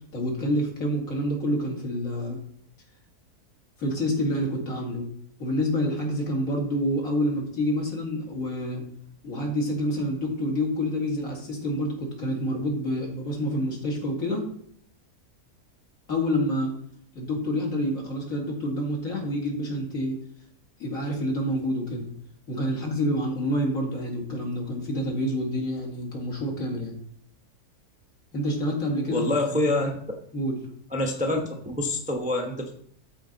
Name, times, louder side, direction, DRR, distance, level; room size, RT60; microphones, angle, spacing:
voice 1, 0.1-2.4 3.8-5.1 5.4-8.8 9.2-14.5 16.1-16.7 17.1-20.2 20.8-22.1 22.5-26.9 28.3-29.6 30.3-30.6, equal, 60° left, -1 dB, 2.4 m, -28 dB
voice 2, 29.1-29.9 30.9-32.7, left 2 dB, 5° right, 2 dB, 0.6 m, -26 dB
12.5 x 4.5 x 3.9 m, 0.66 s
omnidirectional pair, 1.7 m